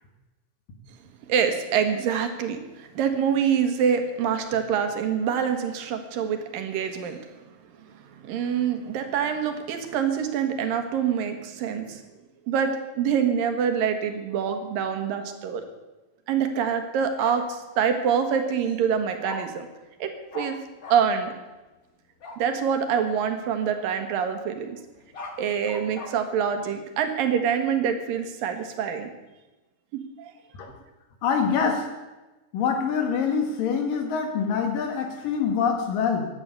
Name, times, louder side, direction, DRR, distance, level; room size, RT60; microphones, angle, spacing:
voice 1, 1.3-7.2 8.2-12.0 12.5-15.6 16.3-19.7 20.0-20.6 20.9-21.3 22.4-24.8 25.4-29.1 29.9-30.3, right 7 dB, 90° right, 7 dB, 3.2 m, -25 dB
Bark, 17.2-17.3 19.2-19.4 20.3-20.5 20.8-21.0 22.2-22.4 24.9-26.1, left 3 dB, 35° left, 1.4 m, -38 dB
voice 2, 31.2-31.9 32.5-36.3, left 6 dB, 80° left, 4 dB, 3.6 m, -25 dB
16.5 x 11.0 x 6.7 m, 1.1 s
omnidirectional pair, 3.9 m